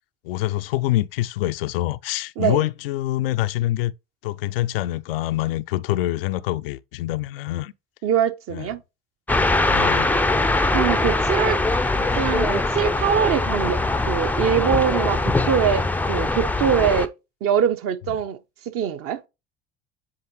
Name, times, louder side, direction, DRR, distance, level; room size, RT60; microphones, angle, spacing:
voice 1, 0.2-3.9 4.2-7.7 8.5-8.7 9.7-10.3, left 15 dB, 65° left, 0.4 m, -25 dB
voice 2, 8.0-8.8 10.7-11.6 12.2-13.8 14.1-17.1 17.4-18.4 18.7-19.2, right 8 dB, 45° right, 0.8 m, -23 dB
sound 1, 9.3-17.1, left 2 dB, 5° left, 0.5 m, -22 dB
8.5 x 4.6 x 3.1 m
figure-of-eight pair, 60°, 32 cm